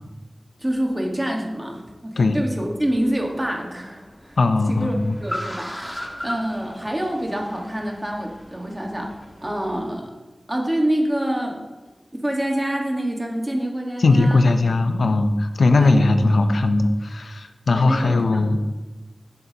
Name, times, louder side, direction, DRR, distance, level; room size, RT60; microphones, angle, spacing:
voice 1, 0.6-4.4 4.7-5.0 5.2-9.1 9.4-10.1 10.5-11.6 12.2-14.7 15.7-16.1 17.7-18.4, right 1 dB, 20° right, 0 dB, 1.5 m, -26 dB
Car, 2.5-9.9, equal, 5° left, 1.5 m, -38 dB
voice 2, 4.4-5.2 14.0-18.6, left 2 dB, 85° left, 7 dB, 0.5 m, -19 dB
10.5 x 6.9 x 2.9 m, 1.1 s
wide cardioid pair, 55°, 0 cm